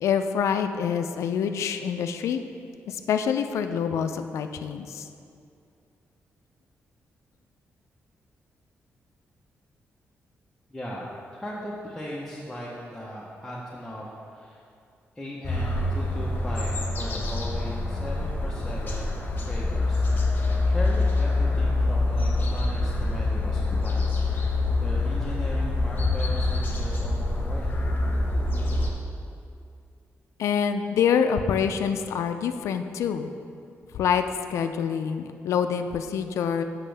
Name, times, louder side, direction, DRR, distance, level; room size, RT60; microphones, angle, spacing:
voice 1, 0.0-2.4 2.9-5.1 30.4-33.3 33.9-36.6, left 7 dB, 85° left, 8 dB, 0.4 m, -26 dB
voice 2, 10.7-14.6 15.2-19.2 19.5-24.2 24.4-27.7, left 1 dB, 10° left, -6 dB, 0.9 m, -38 dB
sound 1, 15.4-28.9, left 2 dB, 40° left, 1.2 m, -25 dB
8.3 x 6.2 x 3.4 m, 2.4 s
cardioid pair, 90°, 5 cm